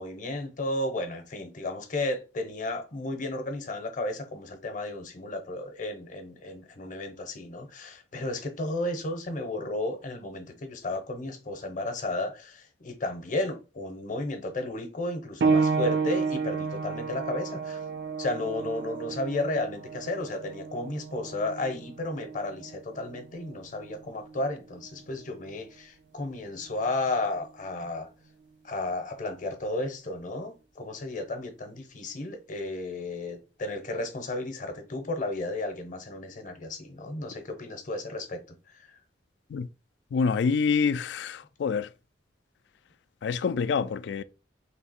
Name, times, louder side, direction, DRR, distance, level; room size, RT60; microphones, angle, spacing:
voice 1, 0.0-17.8 18.2-28.1 28.6-39.0, left 2 dB, 45° left, 0.8 m, -33 dB
sound 1, 15.4-25.6 26.6-26.7 27.4-27.5, right 5 dB, 65° right, 0.4 m, -31 dB
voice 2, 40.1-41.9 43.2-44.2, left 5 dB, 65° left, 0.3 m, -26 dB
3.3 x 2.8 x 4.2 m
head